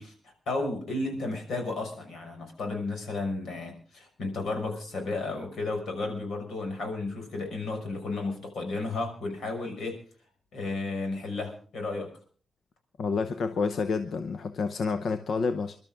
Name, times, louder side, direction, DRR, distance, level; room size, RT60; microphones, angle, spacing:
voice 1, 0.0-10.0 10.5-12.1, left 3 dB, 85° left, 4 dB, 6.0 m, -33 dB
voice 2, 13.0-15.8, left 4 dB, 60° left, 9 dB, 0.9 m, -29 dB
29.0 x 12.5 x 3.7 m, 0.41 s
wide cardioid pair, 170°, 0 cm